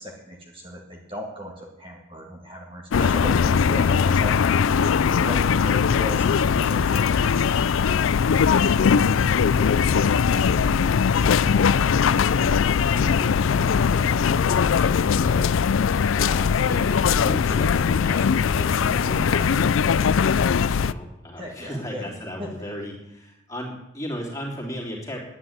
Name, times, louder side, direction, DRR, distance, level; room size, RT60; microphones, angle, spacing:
voice 1, 0.0-4.3 5.2-7.5 21.4-22.5, left 1 dB, 25° right, 0 dB, 1.9 m, -36 dB
sound 1, 2.9-20.9, left 6 dB, 75° left, 0.4 m, -20 dB
voice 2, 8.8-25.2, equal, 15° left, -2 dB, 3.1 m, -37 dB
10.5 x 9.4 x 9.6 m, 0.90 s
head